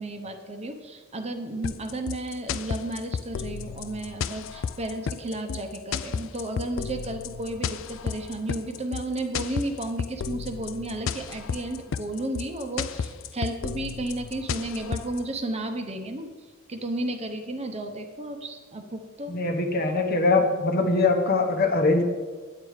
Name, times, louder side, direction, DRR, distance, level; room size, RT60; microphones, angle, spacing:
voice 1, 0.0-16.3 16.7-19.6, right 1 dB, 30° right, 5 dB, 0.9 m, -33 dB
sound 1, 1.6-15.2, left 6 dB, 65° left, 0.4 m, -32 dB
voice 2, 19.3-22.0, left 3 dB, 45° left, 4 dB, 1.1 m, -22 dB
9.3 x 8.7 x 4.9 m, 1.4 s
head